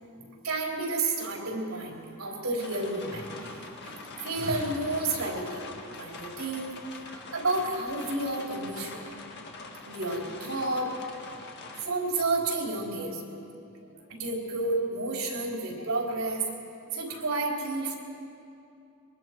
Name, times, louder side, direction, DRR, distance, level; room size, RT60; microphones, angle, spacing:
voice 1, 0.2-5.7 5.9-6.7 7.0-9.0 9.9-10.9 11.8-13.2 14.1-16.4 16.9-18.0, right 2 dB, 75° right, -1 dB, 4.1 m, -31 dB
sound 1, 2.6-11.8, left 3 dB, 50° left, 1.8 m, -44 dB
24.5 x 23.0 x 4.7 m, 2.6 s
head